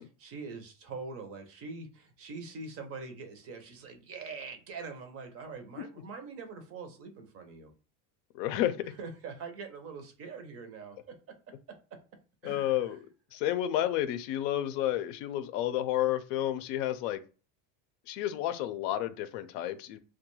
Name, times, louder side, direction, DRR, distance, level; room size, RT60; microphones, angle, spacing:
voice 1, 0.0-7.7 9.0-11.2 11.7-12.0 12.4-12.7, right 4 dB, 30° right, 0.4 m, -43 dB
voice 2, 8.3-8.9 12.4-13.0 13.3-17.2 18.1-20.0, left 12 dB, 85° left, 0.5 m, -31 dB
2.3 x 2.2 x 3.0 m
cardioid pair, 145°, 48 cm